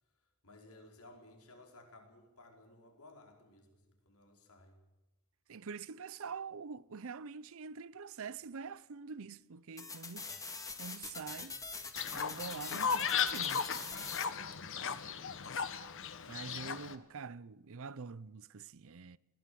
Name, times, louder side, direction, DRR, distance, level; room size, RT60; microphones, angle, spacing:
voice 1, 0.4-4.8 14.3-15.5, left 2 dB, 85° left, 4.9 m, -58 dB
voice 2, 5.5-11.9 12.1-13.7 16.3-19.2, right 5 dB, 65° right, 0.6 m, -46 dB
sound 1, 9.8-14.2, left 4 dB, 15° left, 1.9 m, -44 dB
Fowl, 11.9-16.9, left 7 dB, 60° left, 1.3 m, -36 dB
21.0 x 17.5 x 7.8 m
head